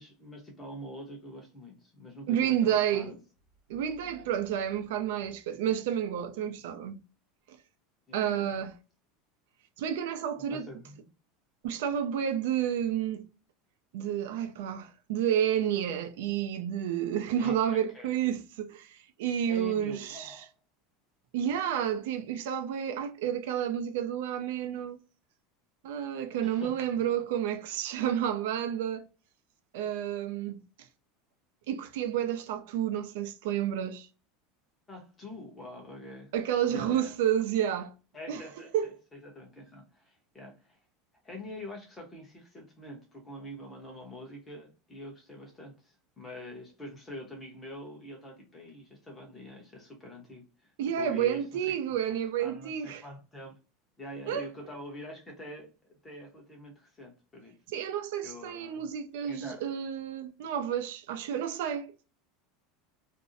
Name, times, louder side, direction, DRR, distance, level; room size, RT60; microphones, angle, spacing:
voice 1, 0.0-3.1 4.0-4.3 6.3-6.6 8.1-8.6 10.5-11.1 17.4-18.4 19.5-20.5 26.4-26.8 28.0-28.2 34.9-36.3 36.7-37.1 38.1-40.8 41.2-51.7 52.4-53.6 54.0-55.7 56.0-57.5 58.2-59.7, left 1 dB, 10° left, 0.8 m, -45 dB
voice 2, 2.3-3.1 3.7-7.0 8.1-8.7 9.8-10.7 11.6-13.3 13.9-20.4 21.3-25.0 25.8-29.0 29.7-30.6 31.7-34.1 36.3-38.0 38.3-38.4 38.7-38.9 50.8-53.0 54.3-54.5 57.7-62.1, right 9 dB, 75° right, 0.4 m, -30 dB
2.5 x 2.0 x 2.5 m
supercardioid pair, 160°, 0 cm